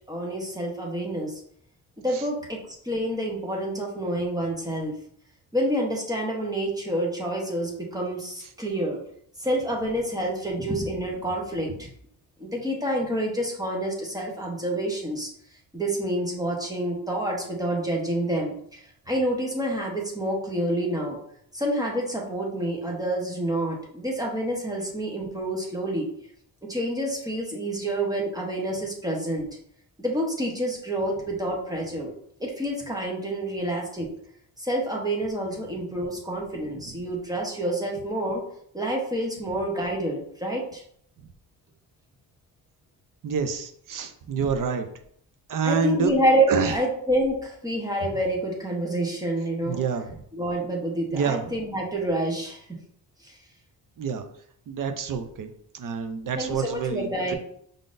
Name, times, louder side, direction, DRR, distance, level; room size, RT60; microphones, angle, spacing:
voice 1, 0.1-1.4 2.0-5.0 5.5-9.0 9.4-11.9 12.4-15.3 15.7-21.2 21.5-26.1 26.6-29.5 30.0-32.1 32.4-34.1 34.6-38.4 38.7-40.8 45.6-49.8 50.3-52.6 53.2-53.4 56.4-57.3, right 1 dB, 10° right, -1 dB, 0.9 m, -28 dB
voice 2, 43.2-44.9 45.5-46.1 46.5-46.8 49.7-50.2 51.1-51.6 54.0-54.2 54.7-57.3, right 6 dB, 55° right, 8 dB, 0.6 m, -28 dB
5.1 x 3.8 x 2.5 m, 0.66 s
wide cardioid pair, 160°, 41 cm